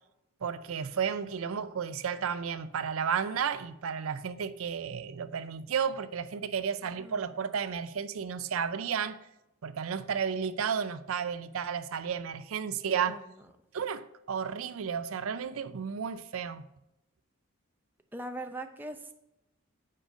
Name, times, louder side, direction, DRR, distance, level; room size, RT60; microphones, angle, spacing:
voice 1, 0.4-9.2 9.6-13.2 13.7-16.6, right 7 dB, 85° right, 0.5 m, -33 dB
voice 2, 18.1-19.1, right 1 dB, 10° right, 0.5 m, -40 dB
7.7 x 5.0 x 5.0 m
head